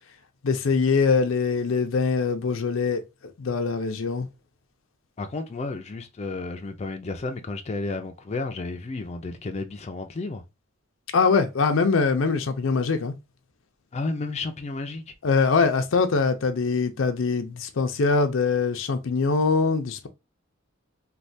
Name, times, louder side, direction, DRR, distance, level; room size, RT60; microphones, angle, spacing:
voice 1, 0.4-3.0 3.4-4.3 11.1-13.1 15.2-20.1, left 4 dB, 85° left, 0.5 m, -23 dB
voice 2, 5.2-10.4 13.9-15.0, left 3 dB, 35° left, 0.4 m, -32 dB
3.2 x 2.2 x 2.6 m
head